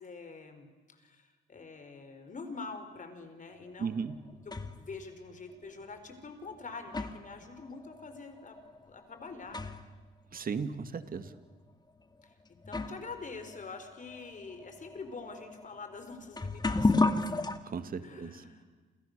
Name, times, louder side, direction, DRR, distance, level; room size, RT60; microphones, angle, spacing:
voice 1, 0.0-4.1 4.4-8.6 8.8-9.8 12.2-12.3 12.7-17.1 18.0-18.6, left 4 dB, 40° left, 8 dB, 4.7 m, -45 dB
sound 1, 3.8-4.9 5.8-5.9 6.6-10.0 10.3-10.4 11.2-11.4 12.2-12.3 12.6-17.6, left 3 dB, 20° left, 1.9 m, -34 dB
voice 2, 3.8-4.2 10.3-11.3 17.7-18.3, right 6 dB, 45° right, 10 dB, 2.0 m, -35 dB
29.5 x 27.5 x 6.8 m, 1.3 s
cardioid pair, 90°, 20 cm